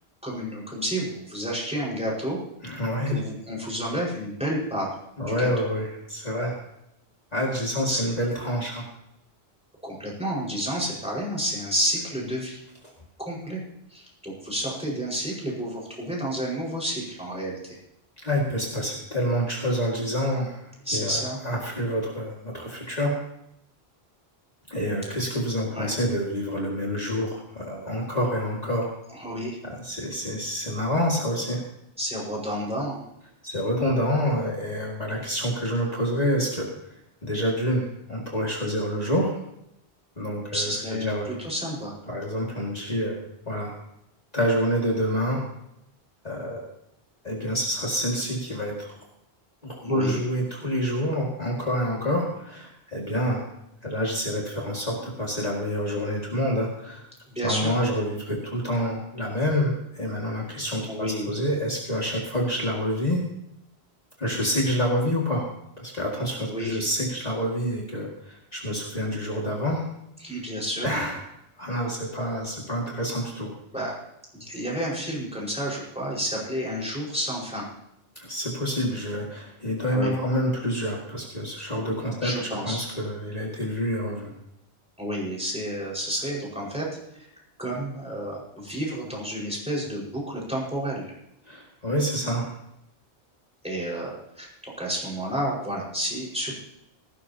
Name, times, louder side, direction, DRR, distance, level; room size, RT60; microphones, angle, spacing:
voice 1, 0.2-2.4 3.1-5.5 7.9-8.1 9.8-12.6 13.2-13.6 13.9-17.8 20.9-21.4 25.7-25.9 29.1-29.6 32.0-33.0 40.5-41.9 49.8-50.2 57.3-57.7 60.9-61.3 66.5-66.8 70.2-70.9 73.7-74.0 74.3-77.7 79.9-80.2 82.2-82.8 85.0-86.9 87.1-87.3 87.6-91.0 93.6-94.5 94.8-96.5, equal, 5° right, -4 dB, 5.2 m, -30 dB
voice 2, 2.6-3.2 5.2-6.6 7.3-8.8 18.2-23.2 24.7-28.9 29.6-31.6 33.4-36.7 37.2-39.4 40.2-40.7 41.0-41.3 42.1-43.2 43.5-43.7 44.3-45.4 46.2-46.6 47.2-48.9 49.6-53.4 53.8-57.0 57.4-63.2 64.2-65.5 65.8-69.9 70.8-71.2 71.6-73.5 73.8-73.9 78.2-84.3 91.5-92.5, equal, 40° left, -3 dB, 2.3 m, -27 dB
18.0 x 16.0 x 2.9 m, 0.81 s
omnidirectional pair, 1.1 m